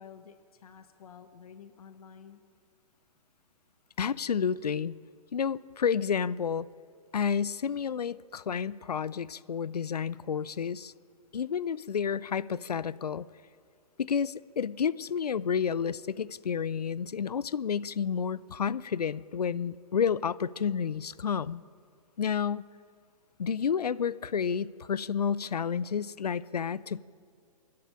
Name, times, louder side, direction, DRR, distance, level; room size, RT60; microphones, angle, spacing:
voice 1, 0.0-2.4, left 7 dB, 70° left, 9 dB, 1.2 m, -51 dB
voice 2, 4.0-5.0 5.3-6.7 7.1-10.9 11.3-13.3 14.0-21.6 22.2-22.7 23.4-27.0, left 7 dB, 85° left, 20 dB, 0.5 m, -30 dB
26.0 x 10.5 x 9.8 m, 2.3 s
hypercardioid pair, 130°, 20 cm